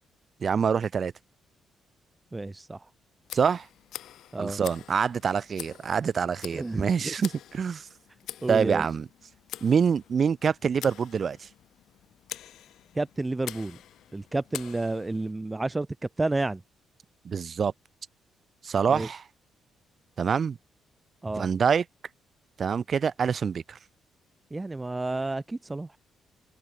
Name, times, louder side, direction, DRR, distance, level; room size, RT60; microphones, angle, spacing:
voice 1, 0.4-1.1 3.3-3.7 4.4-7.9 8.5-9.1 9.6-11.5 17.2-17.7 18.6-19.2 20.2-20.6 21.4-21.8 22.6-23.8, right 6 dB, 45° right, 6.4 m, -25 dB
voice 2, 2.3-2.8 4.3-4.6 6.5-7.1 8.4-8.9 12.9-13.8 14.1-15.9 16.2-16.6 18.9-19.1 21.2-21.5 24.5-25.9, right 2 dB, 15° right, 3.0 m, -30 dB
Tick, 3.2-15.3, left 12 dB, 75° left, 4.6 m, -45 dB
cardioid pair, 90°, 0 cm